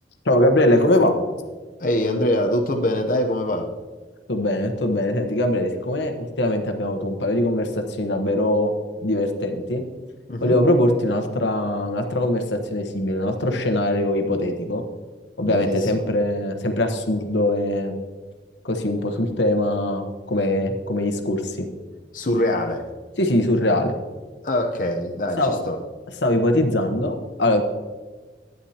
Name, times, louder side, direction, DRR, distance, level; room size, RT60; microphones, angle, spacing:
voice 1, 0.2-1.2 4.3-8.7 9.0-9.8 10.4-14.8 15.4-18.0 18.6-21.7 23.2-24.0 25.4-25.6 26.2-27.6, left 1 dB, 85° left, 5 dB, 1.1 m, -22 dB
voice 2, 1.8-3.7 10.3-10.6 15.4-15.7 22.1-22.8 24.4-25.8, left 1 dB, 50° left, 3 dB, 0.7 m, -23 dB
11.5 x 9.2 x 2.9 m, 1.4 s
head